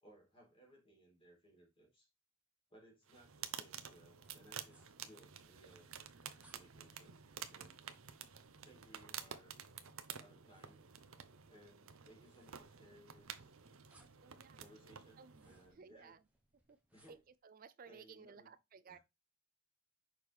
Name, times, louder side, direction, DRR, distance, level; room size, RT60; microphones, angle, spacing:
voice 1, 0.0-2.1 2.7-5.9 6.5-7.2 7.5-7.8 8.3-9.6 10.2-10.8 11.5-13.5 14.6-16.1 16.9-17.2 17.8-18.5 18.9-19.0, equal, 25° left, 2.9 m, -64 dB
sound 1, 3.1-15.7, right 8 dB, 70° right, 0.8 m, -51 dB
sound 2, 8.1-17.4, right 2 dB, 5° right, 1.2 m, -74 dB
voice 2, 14.2-14.7 15.2-16.2 16.5-16.8 17.1-19.0, right 6 dB, 40° right, 0.4 m, -58 dB
6.5 x 4.8 x 3.5 m
head